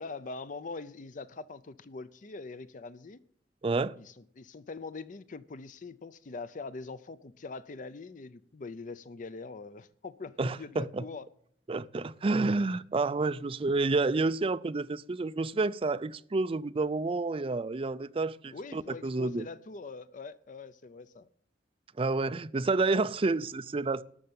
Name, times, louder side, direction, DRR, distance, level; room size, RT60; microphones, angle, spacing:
voice 1, 0.0-3.2 4.0-11.3 18.5-21.3, left 4 dB, 45° left, 0.5 m, -43 dB
voice 2, 3.6-3.9 10.4-11.0 11.7-19.5 22.0-24.0, right 3 dB, 30° right, 0.4 m, -29 dB
12.5 x 6.5 x 8.8 m
head